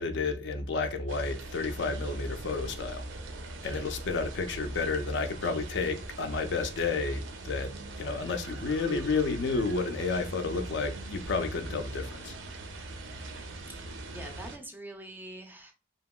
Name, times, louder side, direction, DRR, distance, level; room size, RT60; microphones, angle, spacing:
voice 1, 0.0-3.1 3.6-12.4, left 4 dB, 70° left, 0.4 m, -31 dB
sound 1, 1.1-14.6, right 2 dB, 80° right, 0.5 m, -42 dB
voice 2, 13.7-15.7, right 1 dB, 10° right, 0.4 m, -45 dB
2.8 x 2.7 x 2.2 m
head